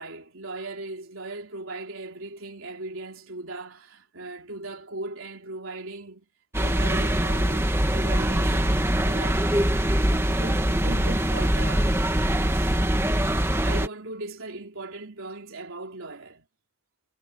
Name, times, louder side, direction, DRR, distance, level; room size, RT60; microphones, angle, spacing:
voice 1, 0.0-6.3 6.6-11.9 12.4-12.7 13.3-16.5, right 2 dB, 90° right, 3.5 m, -38 dB
sound 1, 6.5-13.9, right 1 dB, 10° right, 1.7 m, -23 dB
head